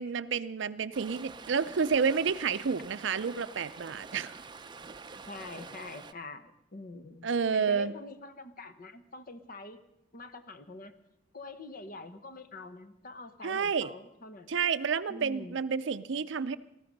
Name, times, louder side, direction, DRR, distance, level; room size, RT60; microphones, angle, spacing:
voice 1, 0.0-4.4 7.2-7.9 13.4-13.9 14.5-16.6, right 6 dB, 65° right, 13 dB, 0.5 m, -30 dB
Stream, 0.9-6.1, right 4 dB, 25° right, 0.6 m, -47 dB
voice 2, 5.3-7.3 7.5-9.8 10.1-10.9 11.3-14.5 15.1-15.6, left 3 dB, 45° left, 10 dB, 1.0 m, -45 dB
18.5 x 14.5 x 5.3 m, 0.87 s
head